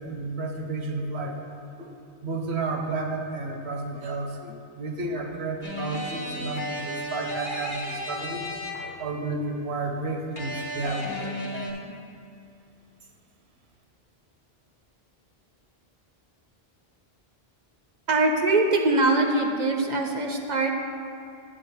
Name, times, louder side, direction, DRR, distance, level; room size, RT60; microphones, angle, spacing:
voice 1, 0.0-1.4 1.8-1.9 2.2-8.4 9.0-12.0, right 3 dB, 85° right, 2 dB, 1.1 m, -32 dB
sound 1, 5.6-9.1 10.4-11.7, left 1 dB, 25° left, 1.0 m, -34 dB
voice 2, 18.1-20.7, right 2 dB, 50° right, 3 dB, 0.7 m, -22 dB
8.7 x 4.0 x 7.0 m, 2.5 s
omnidirectional pair, 1.1 m